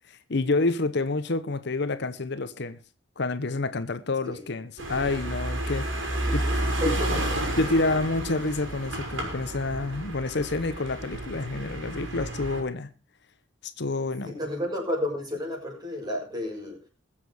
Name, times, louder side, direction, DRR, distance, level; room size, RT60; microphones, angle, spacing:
voice 1, 0.1-2.8 3.2-6.0 6.3-6.4 6.8-7.0 7.6-12.9 13.6-14.3, left 3 dB, 60° left, 0.9 m, -28 dB
sound 1, 4.8-12.6, right 1 dB, 70° right, 4.9 m, -31 dB
voice 2, 6.7-7.1 7.6-7.8 14.2-16.8, left 1 dB, 20° right, 6.4 m, -32 dB
21.5 x 7.6 x 4.8 m
head